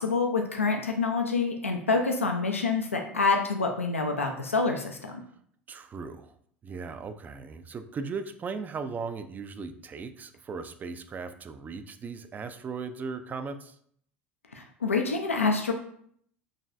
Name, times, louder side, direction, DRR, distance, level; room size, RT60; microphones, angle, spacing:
voice 1, 0.0-5.2 14.5-15.7, left 4 dB, 85° left, 3 dB, 0.5 m, -27 dB
voice 2, 5.7-6.3 6.6-13.7, right 5 dB, 25° right, 9 dB, 0.4 m, -37 dB
6.4 x 3.1 x 2.5 m, 0.65 s
figure-of-eight pair, 75°, 7 cm